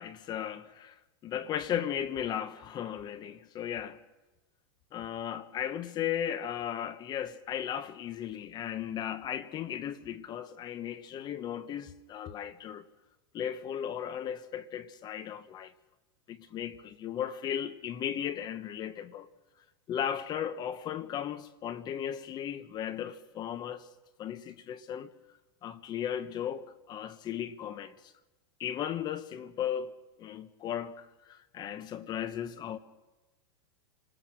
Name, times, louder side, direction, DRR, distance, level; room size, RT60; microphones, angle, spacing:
voice 1, 0.0-4.0 4.9-12.9 13.3-15.7 16.3-19.3 19.9-23.9 24.2-25.1 25.6-28.1 28.6-29.9 30.2-32.8, left 9 dB, 30° left, 1.1 m, -36 dB
28.5 x 20.5 x 6.3 m
hypercardioid pair, 125°, 14 cm